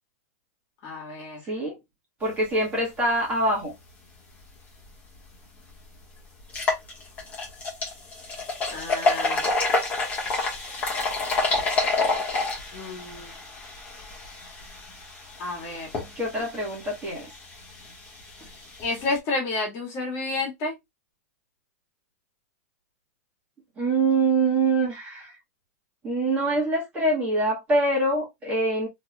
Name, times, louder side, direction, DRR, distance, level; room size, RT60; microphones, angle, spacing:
voice 1, 0.8-1.4 8.7-9.5 12.7-13.3 15.4-15.9 18.8-20.8, left 3 dB, 35° left, 1.8 m, -30 dB
voice 2, 1.5-1.8 2.2-3.7 16.1-17.3 23.8-25.4 26.0-28.9, right 2 dB, 15° right, 1.5 m, -24 dB
sound 1, 5.2-5.3 5.7-5.8 6.4-19.2, left 3 dB, 20° left, 1.3 m, -29 dB
3.5 x 3.1 x 2.3 m
supercardioid pair, 160°, 8 cm